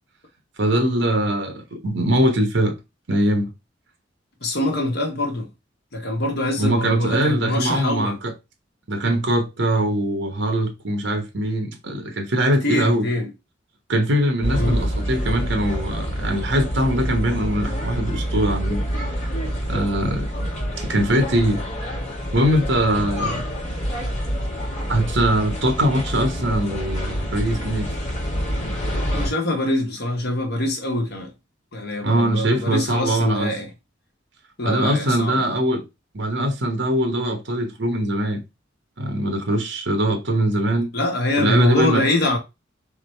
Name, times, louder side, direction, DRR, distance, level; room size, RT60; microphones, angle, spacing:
voice 1, 0.6-2.8 3.1-3.5 6.6-8.3 8.9-13.1 13.9-18.9 19.7-20.3 20.8-21.6 22.3-23.5 24.9-27.9 32.0-33.5 34.6-35.8 36.1-38.4 39.0-40.9 41.4-42.0, right 1 dB, 70° right, 1.1 m, -22 dB
voice 2, 4.4-5.5 5.9-8.2 12.6-13.3 14.5-14.8 29.1-31.3 31.7-33.7 34.6-35.4 40.9-42.4, left 1 dB, 60° left, 1.5 m, -24 dB
sound 1, 14.4-29.3, equal, 40° left, 1.9 m, -27 dB
3.7 x 3.1 x 4.5 m
head